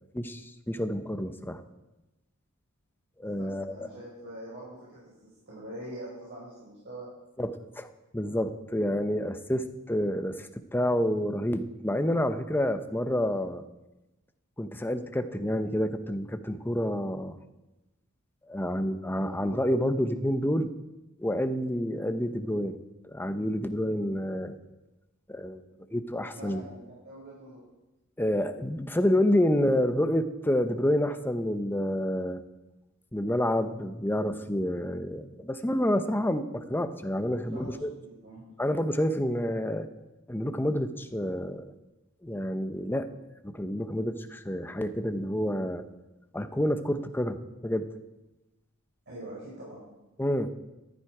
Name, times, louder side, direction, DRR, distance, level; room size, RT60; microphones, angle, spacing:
voice 1, 0.7-1.6 3.2-3.9 7.4-7.9 8.1-13.6 14.6-17.4 18.5-20.7 21.2-22.8 23.0-24.5 25.3-25.6 25.9-26.6 28.2-32.4 33.1-37.9 38.6-39.9 40.3-41.7 42.2-43.1 43.4-45.8 46.3-47.4 47.6-47.9 50.2-50.5, left 1 dB, 10° left, 9 dB, 0.8 m, -28 dB
voice 2, 3.2-5.1 5.5-7.1 19.1-19.4 26.3-27.6 37.5-38.4 49.1-49.8, right 1 dB, 55° right, -7 dB, 5.2 m, -44 dB
14.5 x 12.0 x 4.9 m, 0.99 s
head